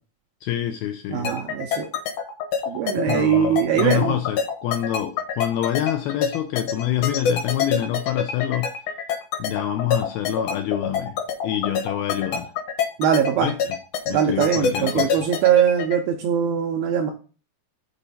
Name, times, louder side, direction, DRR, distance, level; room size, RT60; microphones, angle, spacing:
voice 1, 0.4-1.3 3.0-8.7 9.4-11.2 11.4-12.5 13.4-13.6 14.1-15.2, left 12 dB, 85° left, 2.2 m, -26 dB
voice 2, 1.1-1.9 2.7-4.2 13.0-13.5 14.1-17.1, right 8 dB, 85° right, 2.2 m, -21 dB
sound 1, 1.2-16.0, left 6 dB, 65° left, 2.1 m, -25 dB
6.9 x 4.2 x 5.5 m
omnidirectional pair, 5.0 m